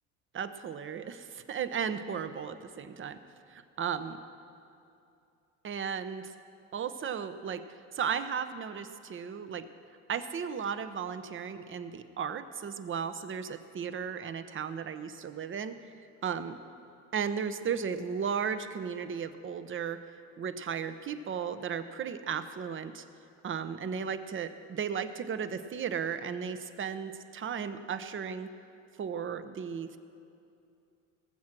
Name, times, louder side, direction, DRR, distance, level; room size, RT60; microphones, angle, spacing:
voice 1, 0.3-3.2 3.5-4.2 5.6-6.3 6.7-9.7 10.1-15.9 16.2-16.6 17.1-20.0 20.4-23.0 23.4-28.5 29.0-30.0, right 7 dB, 35° right, 11 dB, 0.8 m, -35 dB
19.5 x 7.4 x 6.0 m, 2.6 s
supercardioid pair, 85°, 37 cm